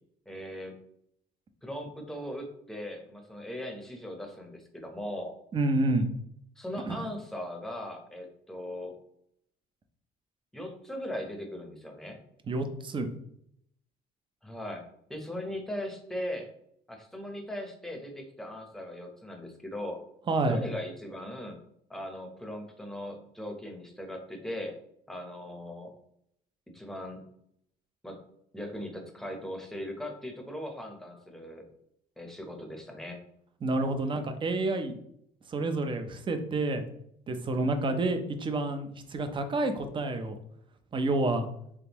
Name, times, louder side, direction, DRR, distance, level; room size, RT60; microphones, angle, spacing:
voice 1, 0.3-0.8 1.6-5.3 6.6-8.9 10.5-12.2 14.4-14.8 15.1-16.5 16.9-20.0 20.5-21.6 21.9-24.7 25.1-25.9 26.7-27.2 28.0-28.2 28.5-31.7 32.2-33.2, left 1 dB, ahead, 3 dB, 0.8 m, -39 dB
voice 2, 5.5-6.1 6.9-7.0 12.5-13.1 20.3-20.6 33.6-34.9 35.5-36.8 37.3-40.4 40.9-41.5, right 2 dB, 30° right, 8 dB, 0.5 m, -29 dB
3.5 x 3.4 x 2.9 m, 0.71 s
cardioid pair, 110°, 17 cm